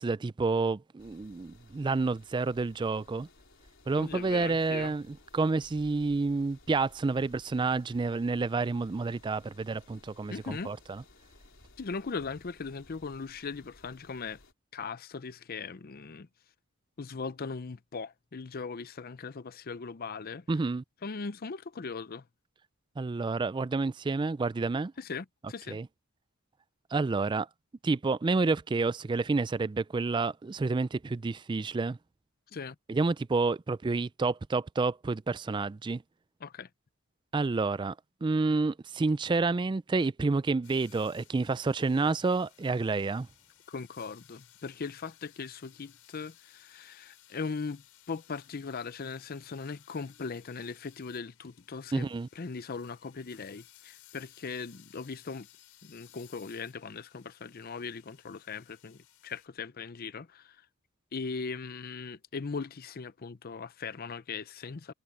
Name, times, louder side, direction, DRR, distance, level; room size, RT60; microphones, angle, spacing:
voice 1, 0.0-3.3 3.9-11.0 20.5-20.8 23.0-24.9 25.7-25.9 26.9-27.5 27.8-32.0 32.9-36.0 37.3-38.0 38.2-43.3 51.9-52.3, right 3 dB, 20° right, 0.3 m, -29 dB
sound 1, 1.0-14.5, left 2 dB, 60° left, 4.2 m, -59 dB
voice 2, 4.0-4.9 10.3-10.7 11.8-14.4 14.7-16.3 17.0-20.5 21.0-22.3 25.0-25.8 32.5-32.8 36.4-36.7 43.7-52.1 52.4-55.5 55.8-60.6 61.1-64.9, left 4 dB, 40° left, 0.6 m, -39 dB
sound 2, 40.6-59.5, left 13 dB, 85° left, 5.2 m, -60 dB
head